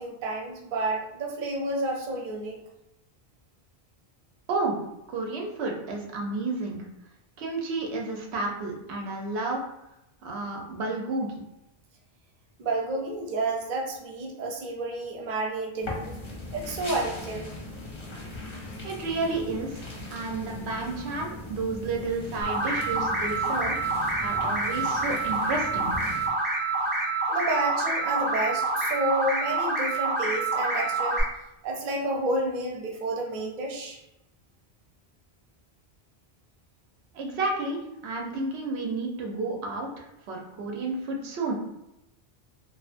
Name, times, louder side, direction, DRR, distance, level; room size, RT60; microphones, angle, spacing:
voice 1, 0.0-2.6 12.6-16.2 16.5-17.5 27.3-31.3 31.6-34.0, right 2 dB, 55° right, 0 dB, 0.7 m, -30 dB
voice 2, 5.1-6.8 7.4-9.6 10.2-11.4 18.8-26.0 37.1-41.5, right 3 dB, 90° right, 0 dB, 0.9 m, -31 dB
sound 1, 15.8-26.3, left 2 dB, 35° left, 0.5 m, -39 dB
sound 2, 22.4-31.2, right 3 dB, 20° right, 0.3 m, -27 dB
2.4 x 2.4 x 2.4 m, 0.87 s
omnidirectional pair, 1.1 m